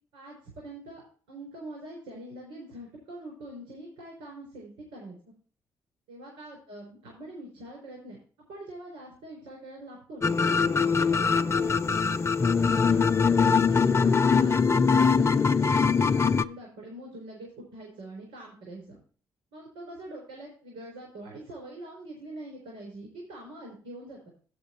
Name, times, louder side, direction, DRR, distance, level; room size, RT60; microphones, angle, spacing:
voice 1, 0.1-5.2 6.1-8.2 8.5-12.0 12.5-19.0 19.5-24.2, right 1 dB, 90° right, -1 dB, 4.1 m, -44 dB
sound 1, 10.2-16.4, left 5 dB, 30° left, 0.5 m, -22 dB
7.8 x 7.8 x 4.4 m, 0.42 s
supercardioid pair, 60°, 9 cm